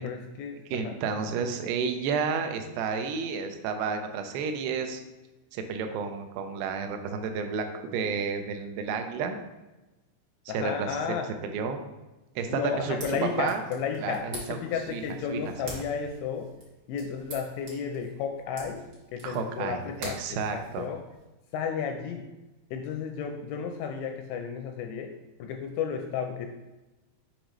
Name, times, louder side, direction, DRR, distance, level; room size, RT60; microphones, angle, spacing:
voice 1, 0.0-0.6 0.8-0.9 10.5-11.3 12.5-16.5 16.9-18.9 19.1-21.0 21.5-22.3 22.7-25.1 25.4-26.5, left 6 dB, 85° left, 4 dB, 2.5 m, -33 dB
voice 2, 0.7-5.0 5.5-9.4 10.5-10.9 11.4-11.8 12.4-13.6 14.0-14.6 14.9-15.5 19.2-20.9, right 5 dB, 85° right, 6 dB, 2.3 m, -31 dB
sound 1, 12.6-21.2, right 1 dB, 65° right, 1.2 m, -46 dB
7.5 x 4.9 x 3.0 m, 1.1 s
omnidirectional pair, 5.3 m